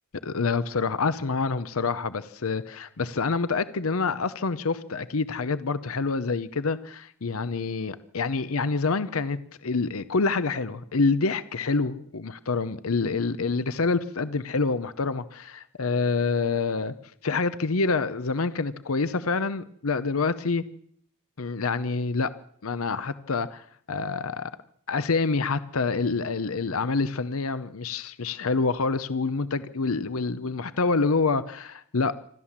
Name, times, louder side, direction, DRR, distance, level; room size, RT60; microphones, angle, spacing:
voice 1, 0.2-16.9 17.2-20.6 21.4-22.3 22.6-24.5 24.9-32.1, left 4 dB, 85° left, 14 dB, 0.8 m, -27 dB
27.0 x 13.0 x 7.4 m, 0.65 s
head